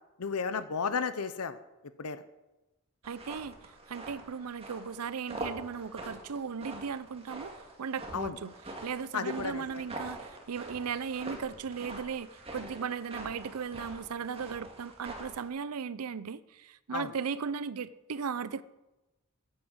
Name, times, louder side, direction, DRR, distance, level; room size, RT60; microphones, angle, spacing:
voice 1, 0.2-1.6 2.0-2.2 8.1-8.4 9.1-9.8 16.9-17.1, left 5 dB, 90° left, 0.7 m, -33 dB
sound 1, 3.0-15.5, right 2 dB, 25° right, 2.1 m, -44 dB
voice 2, 3.0-3.5 3.9-7.5 7.8-8.5 8.8-18.6, right 6 dB, 90° right, 0.6 m, -37 dB
9.8 x 9.5 x 8.0 m
head